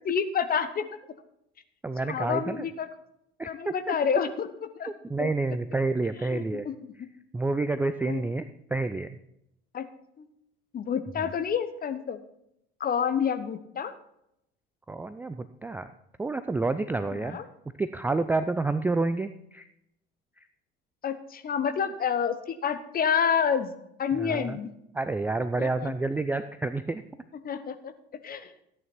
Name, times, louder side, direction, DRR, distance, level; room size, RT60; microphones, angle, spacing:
voice 1, 0.0-0.9 2.0-2.9 3.4-4.5 4.8-4.9 5.2-5.3 6.2-7.1 8.1-8.3 9.7-9.9 10.2-10.3 10.7-12.2 12.8-13.9 17.1-17.4 21.0-23.7 24.0-24.7 25.6-25.9 27.4-27.9 28.2-28.5, left 7 dB, 30° left, 10 dB, 1.0 m, -28 dB
voice 2, 1.8-2.6 3.4-3.5 3.9-4.0 4.9-6.7 7.3-8.5 8.7-9.2 14.9-15.9 16.2-17.4 17.8-19.6 24.2-24.6 24.9-27.0, right 3 dB, 5° right, 11 dB, 0.4 m, -29 dB
14.0 x 9.1 x 4.3 m, 0.80 s
figure-of-eight pair, 65°, 31 cm